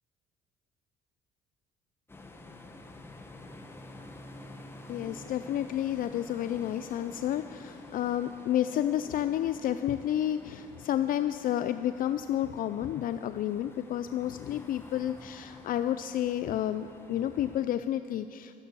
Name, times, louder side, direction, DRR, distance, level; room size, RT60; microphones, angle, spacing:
sound 1, 2.1-17.6, left 2 dB, 15° left, 1.2 m, -50 dB
voice 1, 4.9-18.5, left 11 dB, 55° left, 11 dB, 0.4 m, -30 dB
14.0 x 11.0 x 6.8 m, 2.5 s
cardioid pair, 110°, 17 cm